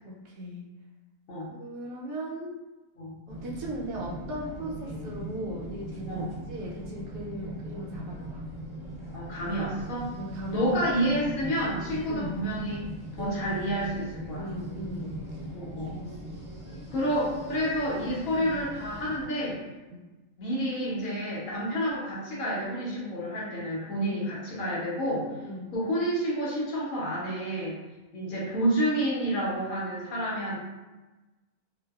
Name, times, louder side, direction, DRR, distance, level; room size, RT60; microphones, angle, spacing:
voice 1, 0.0-0.7 1.6-2.6 3.3-8.4 10.2-10.7 12.1-12.4 13.2-13.6 14.4-15.2 15.8-16.0 17.0-17.1 18.3-18.6 19.9-20.0 25.4-25.7, right 1 dB, 70° right, -3 dB, 0.9 m, -38 dB
sound 1, 3.3-19.3, right 1 dB, ahead, 0.8 m, -40 dB
voice 2, 9.1-10.1 10.5-12.8 13.2-14.5 15.5-15.9 16.9-19.6 20.4-25.3 25.7-27.8 28.1-30.6, equal, 70° left, -5 dB, 1.0 m, -29 dB
2.6 x 2.3 x 2.2 m, 1.2 s
omnidirectional pair, 1.6 m